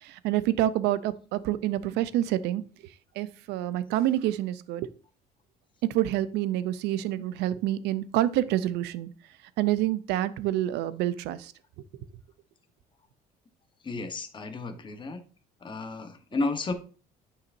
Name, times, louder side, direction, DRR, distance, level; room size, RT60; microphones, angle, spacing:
voice 1, 0.0-2.6 3.2-4.9 5.9-9.1 9.6-11.5, right 13 dB, 85° right, 15 dB, 0.5 m, -27 dB
voice 2, 13.8-15.2 15.6-16.7, left 3 dB, 30° left, 7 dB, 1.1 m, -32 dB
9.3 x 5.6 x 2.6 m, 0.37 s
cardioid pair, 110°, 17 cm